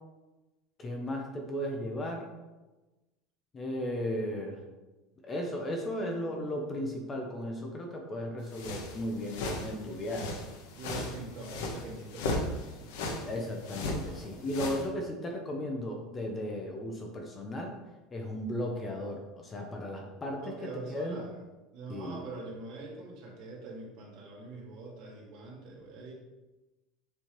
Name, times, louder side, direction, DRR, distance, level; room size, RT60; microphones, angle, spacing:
voice 1, 0.8-2.3 3.5-4.6 5.2-10.3 13.3-17.7 18.1-21.2 21.9-22.2, left 1 dB, 20° left, 2 dB, 0.8 m, -35 dB
sound 1, 8.5-14.9, left 2 dB, 85° left, 1.2 m, -37 dB
voice 2, 10.8-13.0 14.0-14.5 20.3-21.4 21.7-26.1, right 3 dB, 50° right, -3 dB, 2.0 m, -44 dB
7.2 x 3.6 x 4.5 m, 1.1 s
cardioid pair, 165°, 0 cm